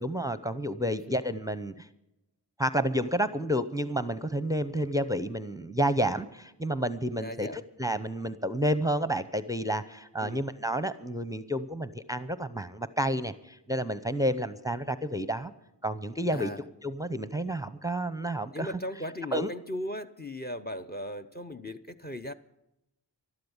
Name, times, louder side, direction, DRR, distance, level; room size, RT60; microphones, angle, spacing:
voice 1, 0.0-1.9 2.6-15.5 15.8-16.5 16.8-18.7 19.3-19.5, equal, 10° right, 13 dB, 0.7 m, -30 dB
voice 2, 0.8-1.2 7.2-7.6 10.2-10.4 16.3-16.6 18.5-22.3, equal, 25° left, 13 dB, 0.8 m, -37 dB
12.5 x 11.5 x 7.1 m, 0.88 s
wide cardioid pair, 50°, 42 cm